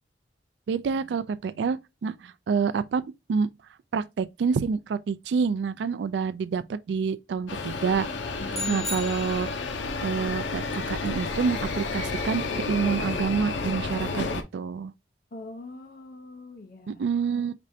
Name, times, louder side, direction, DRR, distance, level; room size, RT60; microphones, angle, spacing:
voice 1, 0.7-3.5 3.9-8.1 8.7-9.5 10.0-14.2 14.5-14.9 16.9-17.5, right 5 dB, 70° right, 0.3 m, -27 dB
sound 1, 7.5-14.4, left 3 dB, 85° left, 0.7 m, -31 dB
voice 2, 8.4-8.9 15.3-17.0, left 2 dB, 50° left, 0.7 m, -41 dB
sound 2, 8.5-9.8, left 1 dB, ahead, 0.6 m, -35 dB
5.1 x 3.2 x 2.7 m
head